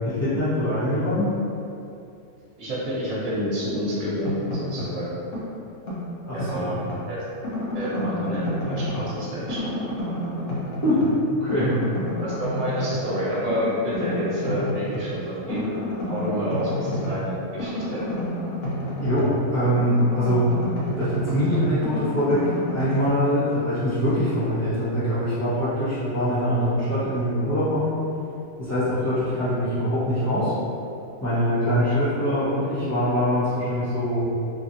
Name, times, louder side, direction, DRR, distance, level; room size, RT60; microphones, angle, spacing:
voice 1, 0.0-1.3 6.3-6.7 10.8-11.0 11.3-11.7 19.0-20.4 21.0-22.4 22.7-27.9 28.6-30.5 31.2-34.2, equal, 15° left, -14 dB, 0.8 m, -23 dB
voice 2, 2.6-5.1 6.3-7.2 7.7-10.2 11.5-11.7 12.2-15.6 16.1-18.0, equal, 65° right, -9 dB, 1.2 m, -29 dB
sound 1, 4.0-5.0 5.3-7.1 7.4-9.2 9.5-11.2 11.5-13.1 13.5-15.1 15.5-19.5 19.8-23.1, left 1 dB, 65° left, 1.0 m, -30 dB
3.2 x 2.5 x 2.7 m, 2.7 s
omnidirectional pair, 1.5 m